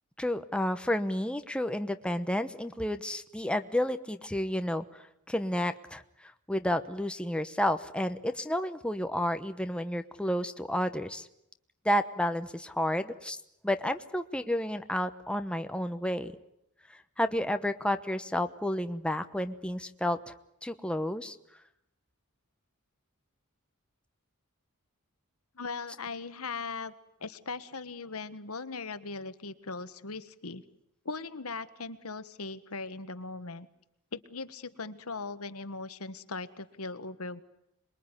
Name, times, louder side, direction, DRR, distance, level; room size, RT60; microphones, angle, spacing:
voice 1, 0.2-11.3 11.8-13.4 13.6-16.3 16.9-20.3 20.6-21.4, left 1 dB, 5° left, 8 dB, 1.0 m, -31 dB
voice 2, 25.5-26.9 27.2-30.6 31.0-33.7 34.1-37.4, left 4 dB, 70° left, 12 dB, 1.5 m, -39 dB
27.0 x 22.0 x 9.9 m, 0.80 s
head